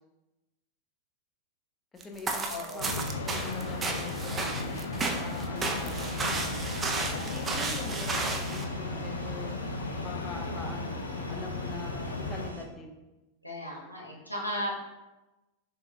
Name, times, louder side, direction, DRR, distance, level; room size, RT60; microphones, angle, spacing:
voice 1, 1.9-4.8 5.2-9.6 10.0-11.0 11.3-13.0, left 3 dB, 20° left, 2 dB, 0.7 m, -44 dB
sound 1, 2.0-8.6, right 3 dB, 20° right, 0.5 m, -33 dB
voice 2, 2.5-2.9 13.4-14.8, left 1 dB, 90° left, -3 dB, 1.0 m, -36 dB
sound 2, 2.8-12.5, left 3 dB, 65° left, 0.5 m, -35 dB
sound 3, 5.5-12.6, right 2 dB, 80° right, 0.5 m, -46 dB
6.8 x 2.5 x 2.7 m, 1.0 s
figure-of-eight pair, 90°, 0 cm